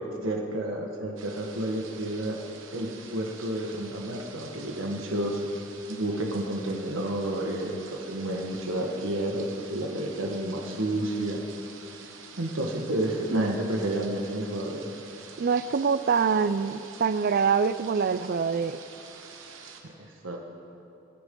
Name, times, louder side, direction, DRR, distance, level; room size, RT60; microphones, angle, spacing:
voice 1, 0.0-2.4 2.7-5.4 5.9-11.4 12.4-14.9 19.8-20.4, right 1 dB, 90° right, 1 dB, 1.4 m, -30 dB
sound 1, 1.2-19.8, right 5 dB, 70° right, 1.2 m, -47 dB
voice 2, 15.4-18.8, right 6 dB, 50° right, 14 dB, 0.4 m, -25 dB
23.5 x 10.5 x 3.8 m, 2.9 s
head